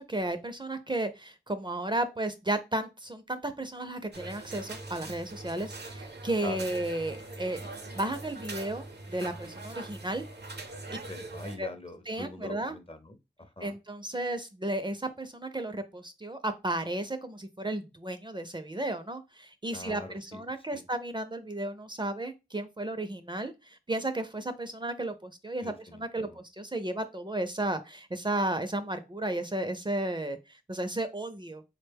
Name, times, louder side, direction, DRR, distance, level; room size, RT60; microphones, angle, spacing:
voice 1, 0.0-7.6 7.9-10.2 11.6-11.7 12.1-12.8 13.6-23.5 23.9-31.6, right 1 dB, 25° right, 8 dB, 0.5 m, -33 dB
sound 1, 4.1-11.6, right 2 dB, 65° right, 0.7 m, -42 dB
voice 2, 10.9-13.7 19.7-20.4 20.7-20.8 25.6-26.4, left 1 dB, 30° left, 7 dB, 0.6 m, -43 dB
3.8 x 2.2 x 3.4 m, 0.26 s
cardioid pair, 40°, 18 cm